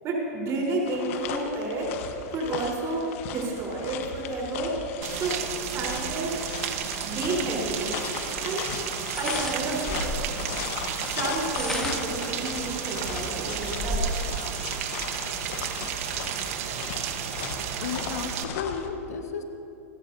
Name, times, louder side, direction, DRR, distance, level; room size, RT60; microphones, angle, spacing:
voice 1, 0.0-1.9 2.3-4.8 5.1-6.4 7.0-8.0 8.4-8.7 9.2-10.7 11.0-14.2, right 2 dB, 35° right, -2 dB, 4.1 m, -31 dB
sound 1, 0.9-18.9, left 8 dB, 60° left, 1.3 m, -37 dB
Rain, 5.0-18.4, right 9 dB, 65° right, 1.2 m, -33 dB
sound 2, 7.7-7.8 9.0-10.4 11.3-12.2 12.8-12.9 13.2-14.3, left 1 dB, 5° left, 1.7 m, -32 dB
voice 2, 17.8-19.4, left 6 dB, 80° left, 5 dB, 1.5 m, -33 dB
27.0 x 14.0 x 2.8 m, 2.8 s
hypercardioid pair, 120°, 8 cm